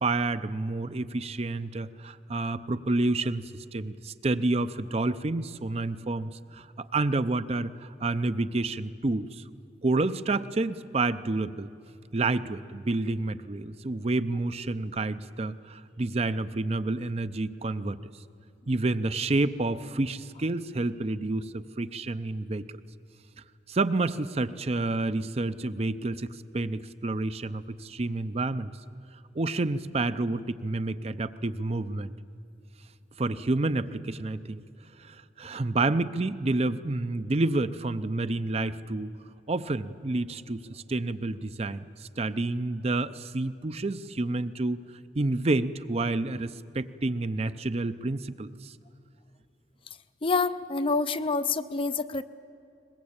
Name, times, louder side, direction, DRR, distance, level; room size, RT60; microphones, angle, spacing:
voice 1, 0.0-3.4 3.7-9.4 9.8-11.7 12.1-18.0 18.7-22.8 23.7-28.7 29.3-32.1 33.2-34.6 35.0-39.1 39.5-44.8 45.1-48.7, right 2 dB, 35° right, 12 dB, 0.6 m, -29 dB
voice 2, 50.2-52.2, left 4 dB, 30° left, 12 dB, 0.5 m, -27 dB
22.5 x 20.5 x 8.7 m, 2.6 s
head